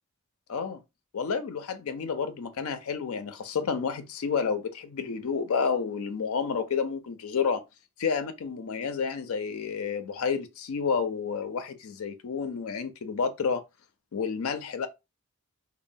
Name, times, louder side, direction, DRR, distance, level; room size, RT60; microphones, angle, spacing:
voice 1, 0.5-0.8 1.1-7.6 8.0-13.6 14.1-14.9, left 5 dB, 75° left, 0.4 m, -30 dB
3.0 x 2.0 x 2.5 m
head